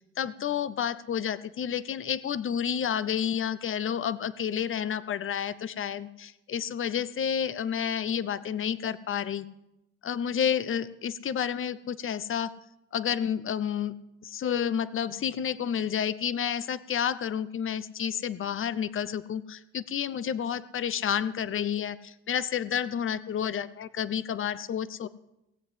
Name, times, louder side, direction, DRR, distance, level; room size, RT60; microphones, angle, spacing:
voice 1, 0.2-9.5 10.0-12.5 12.9-14.0 14.2-25.1, left 8 dB, 45° left, 16 dB, 0.7 m, -30 dB
18.0 x 7.9 x 7.7 m, 0.89 s
cardioid pair, 90°, 30 cm